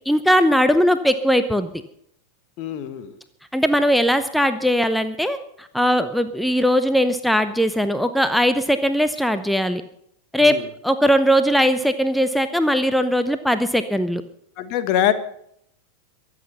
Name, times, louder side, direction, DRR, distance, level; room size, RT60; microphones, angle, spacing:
voice 1, 0.1-1.7 3.5-9.8 10.3-10.6 10.8-14.2, equal, ahead, 10 dB, 0.8 m, -19 dB
voice 2, 2.6-3.2 10.4-10.7 14.6-15.1, left 11 dB, 40° left, 10 dB, 1.5 m, -23 dB
23.5 x 8.3 x 5.6 m, 0.71 s
figure-of-eight pair, 90°, 0 cm